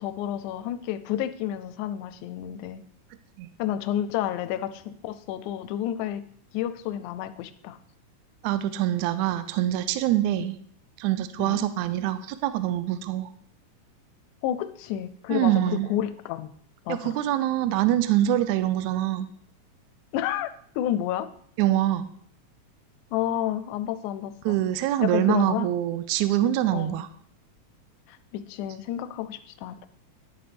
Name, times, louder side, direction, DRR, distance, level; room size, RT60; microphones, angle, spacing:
voice 1, 0.0-2.8 3.6-6.2 6.5-7.8 11.4-11.6 14.4-16.5 16.9-17.2 20.1-21.3 23.1-24.6 25.0-25.7 26.7-27.0 28.1-29.9, left 11 dB, 80° left, 12 dB, 2.0 m, -30 dB
voice 2, 8.4-10.6 11.0-13.3 15.3-15.9 16.9-19.3 21.6-22.1 24.4-27.1, right 13 dB, 75° right, 12 dB, 1.9 m, -24 dB
11.0 x 8.8 x 3.4 m, 0.62 s
omnidirectional pair, 3.7 m